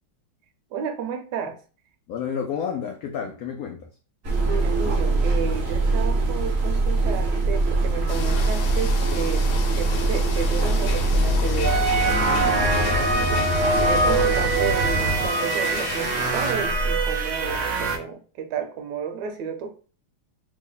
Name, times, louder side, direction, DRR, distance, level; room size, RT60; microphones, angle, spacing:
voice 1, 0.7-1.6 4.4-12.5 13.2-19.7, right 6 dB, 70° right, 1.1 m, -32 dB
voice 2, 2.1-3.9 12.4-12.7 13.1-13.3, left 7 dB, 90° left, 0.7 m, -31 dB
sound 1, 4.2-15.3, right 2 dB, 50° right, 0.8 m, -23 dB
sound 2, 8.1-16.5, left 6 dB, 75° left, 1.2 m, -34 dB
sound 3, 11.6-18.0, right 3 dB, 85° right, 0.6 m, -23 dB
3.3 x 2.1 x 3.8 m
omnidirectional pair, 2.2 m